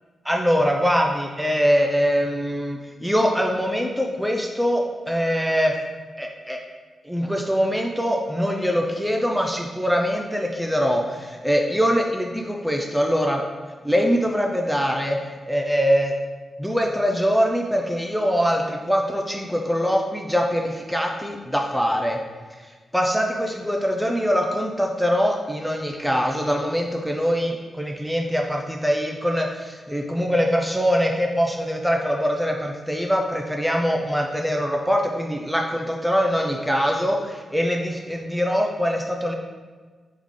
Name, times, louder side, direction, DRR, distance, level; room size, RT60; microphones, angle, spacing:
voice 1, 0.2-5.7 6.2-6.6 7.0-13.4 13.8-15.2 15.5-16.1 16.6-22.2 22.9-39.3, equal, ahead, 1 dB, 0.4 m, -23 dB
3.6 x 3.6 x 3.1 m, 1.5 s
cardioid pair, 60°, 0 cm